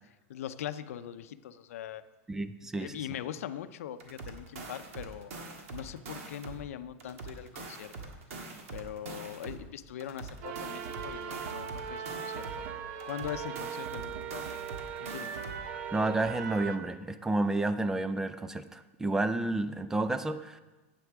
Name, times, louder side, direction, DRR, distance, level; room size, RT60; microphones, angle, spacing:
voice 1, 0.3-2.0 2.8-5.3 5.7-8.1 8.7-12.7 13.1-14.7 15.0-15.3, left 10 dB, 90° left, 12 dB, 0.6 m, -41 dB
voice 2, 2.3-2.9 15.9-20.6, right 2 dB, 5° right, 12 dB, 0.3 m, -30 dB
sound 1, 4.0-6.7 7.0-9.7 10.0-12.7 13.0-15.7, right 3 dB, 80° right, 1.7 m, -44 dB
sound 2, 10.4-16.8, right 7 dB, 55° right, 0.8 m, -39 dB
8.5 x 8.0 x 6.0 m, 1.1 s
supercardioid pair, 165°, 7 cm